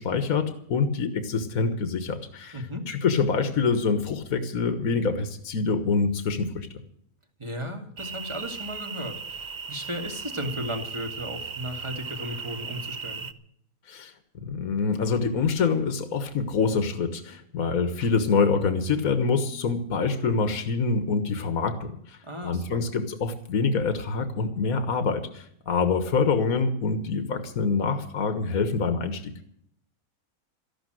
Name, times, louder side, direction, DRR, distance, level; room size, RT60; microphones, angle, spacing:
voice 1, 0.0-6.7 13.9-14.1 14.5-22.2 22.4-29.2, left 4 dB, 75° left, 8 dB, 1.8 m, -26 dB
voice 2, 2.5-2.9 7.4-13.3 22.2-22.8, equal, 20° right, 3 dB, 2.5 m, -35 dB
sound 1, 8.0-13.3, right 5 dB, 40° right, 0.8 m, -37 dB
14.0 x 12.0 x 7.8 m, 0.68 s
omnidirectional pair, 1.5 m